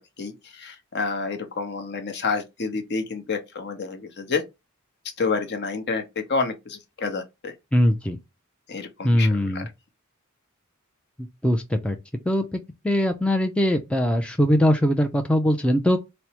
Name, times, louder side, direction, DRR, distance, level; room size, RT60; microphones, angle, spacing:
voice 1, 0.2-4.4 5.2-7.5 8.7-9.6, left 4 dB, 55° left, 0.8 m, -29 dB
voice 2, 7.7-8.2 9.0-9.7 11.4-12.0 12.3-12.6 12.8-16.0, equal, 5° left, 0.3 m, -21 dB
4.4 x 2.0 x 2.8 m
head